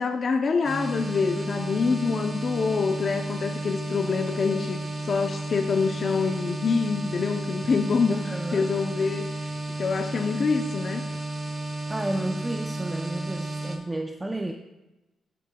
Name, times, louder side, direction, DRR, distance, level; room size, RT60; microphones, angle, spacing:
voice 1, 0.0-9.5 9.8-11.0, left 5 dB, 55° left, 4 dB, 0.7 m, -26 dB
sound 1, 0.6-13.8, right 2 dB, 35° right, 2.0 m, -33 dB
voice 2, 1.4-2.0 8.1-8.7 11.9-14.5, right 1 dB, 20° right, 4 dB, 0.7 m, -32 dB
16.0 x 7.8 x 2.3 m, 1.0 s
cardioid pair, 65°, 0 cm